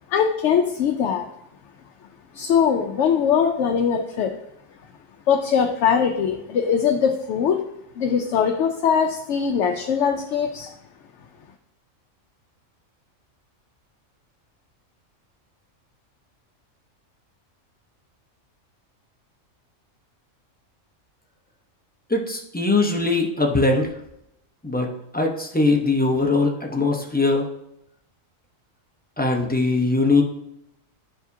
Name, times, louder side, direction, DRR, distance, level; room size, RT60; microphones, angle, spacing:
voice 1, 0.1-1.3 2.3-4.4 5.3-7.6 8.0-10.7, left 7 dB, 70° left, 3 dB, 0.9 m, -21 dB
voice 2, 22.1-23.9 24.6-27.5 29.2-30.2, left 3 dB, 10° left, 0 dB, 0.5 m, -21 dB
11.0 x 4.8 x 2.7 m, 0.82 s
omnidirectional pair, 1.4 m